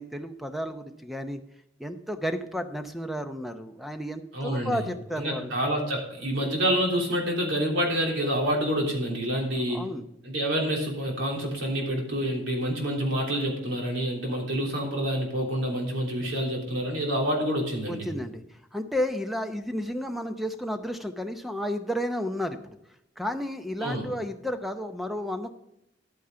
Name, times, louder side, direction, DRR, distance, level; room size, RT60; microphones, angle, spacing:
voice 1, 0.0-1.4 1.8-5.5 9.7-10.1 16.2-16.3 17.9-22.8 23.2-25.5, equal, ahead, 7 dB, 0.7 m, -32 dB
voice 2, 4.3-4.8 5.2-9.8 10.2-18.1 23.8-24.0, equal, 80° right, -1 dB, 3.3 m, -27 dB
11.0 x 9.1 x 3.8 m, 0.80 s
head